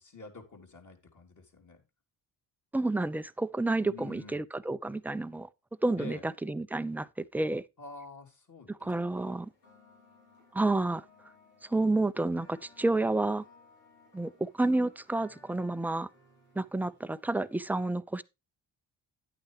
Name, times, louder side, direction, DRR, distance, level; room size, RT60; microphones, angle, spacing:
voice 1, 0.0-1.8 3.8-4.4 5.9-6.3 7.8-8.9 9.2-9.4, left 3 dB, 35° left, 3.4 m, -48 dB
voice 2, 2.7-5.5 5.8-7.6 8.8-9.5 10.5-11.0 11.6-13.4 14.1-16.1 16.6-18.2, right 2 dB, 5° right, 0.5 m, -30 dB
sound 1, 9.1-17.7, left 3 dB, 85° left, 4.3 m, -61 dB
10.5 x 8.9 x 3.3 m
hypercardioid pair, 45°, 48 cm